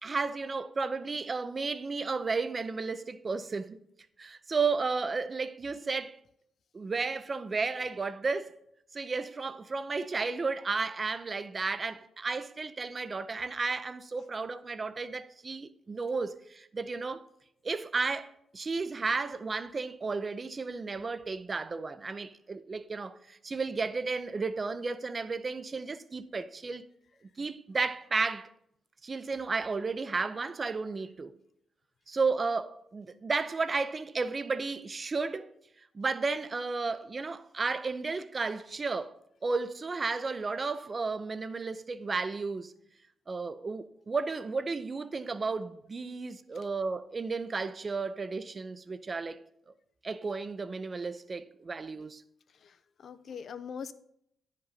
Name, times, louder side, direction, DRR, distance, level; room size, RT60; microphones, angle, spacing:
voice 1, 0.0-3.8 4.2-6.2 6.7-8.5 8.9-17.3 17.6-26.9 27.4-28.5 29.0-31.4 32.1-35.5 35.9-39.1 39.4-42.7 43.3-49.4 50.0-52.2, right 4 dB, 35° right, 0.5 m, -33 dB
voice 2, 52.6-53.9, left 6 dB, 65° left, 0.5 m, -42 dB
9.5 x 5.2 x 4.0 m
cardioid pair, 85°, 0 cm